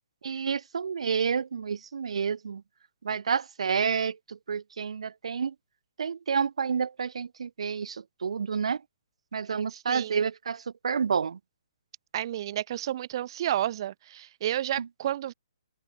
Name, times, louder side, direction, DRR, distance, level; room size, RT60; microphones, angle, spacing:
voice 1, 0.2-2.6 3.0-5.5 6.0-8.8 9.3-11.4 14.8-14.9, right 6 dB, 70° right, 1.4 m, -29 dB
voice 2, 9.9-10.2 12.1-15.3, right 12 dB, 45° right, 2.7 m, -31 dB
open air
hypercardioid pair, 140°, 3 cm